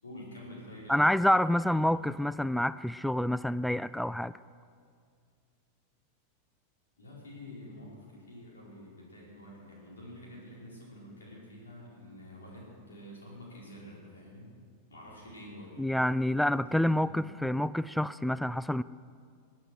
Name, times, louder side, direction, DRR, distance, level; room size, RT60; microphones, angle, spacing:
voice 1, 0.0-1.8 7.0-14.5 14.9-15.8 16.6-17.2, left 1 dB, 80° left, -4 dB, 4.8 m, -48 dB
voice 2, 0.9-4.3 15.8-18.8, left 1 dB, ahead, 17 dB, 0.3 m, -27 dB
20.5 x 9.3 x 6.4 m, 2.2 s
figure-of-eight pair, 90°, 0 cm